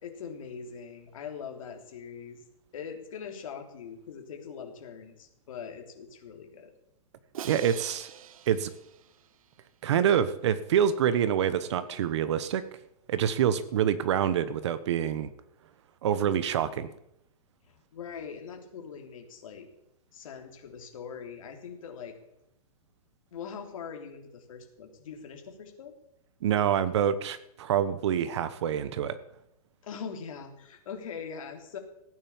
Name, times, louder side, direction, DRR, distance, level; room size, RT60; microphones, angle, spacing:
voice 1, 0.0-2.4 2.7-6.7 17.6-19.7 20.1-22.2 23.3-25.9 29.8-31.8, left 6 dB, 60° left, 3 dB, 3.2 m, -42 dB
Crash cymbal, 7.3-9.6, right 9 dB, 65° right, 1.0 m, -44 dB
voice 2, 7.4-8.1 8.5-8.7 9.8-12.6 13.1-15.3 16.0-16.9 26.4-29.2, right 9 dB, 45° right, 14 dB, 1.2 m, -26 dB
16.0 x 9.4 x 7.1 m, 0.80 s
hypercardioid pair, 170°, 19 cm